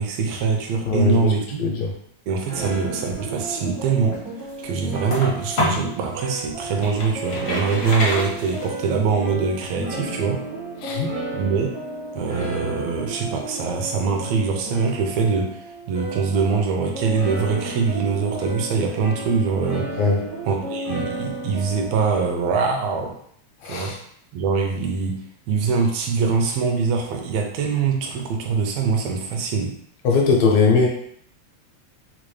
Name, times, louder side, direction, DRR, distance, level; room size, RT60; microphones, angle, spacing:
voice 1, 0.0-1.6 2.3-4.2 4.6-10.4 11.3-11.7 12.1-19.9 20.5-23.1 23.7-24.0 24.3-25.2 25.5-29.7, right 5 dB, 75° right, 2 dB, 1.6 m, -23 dB
voice 2, 0.9-1.3 1.6-1.9 10.8-11.1 20.0-20.2 23.6-24.0 30.0-30.9, left 4 dB, 75° left, 0 dB, 1.8 m, -19 dB
sound 1, 2.5-22.0, right 2 dB, 35° right, 0.5 m, -33 dB
sound 2, 3.8-5.9 6.4-8.9, left 1 dB, 55° left, 1.0 m, -28 dB
5.0 x 2.1 x 3.2 m, 0.66 s
omnidirectional pair, 3.4 m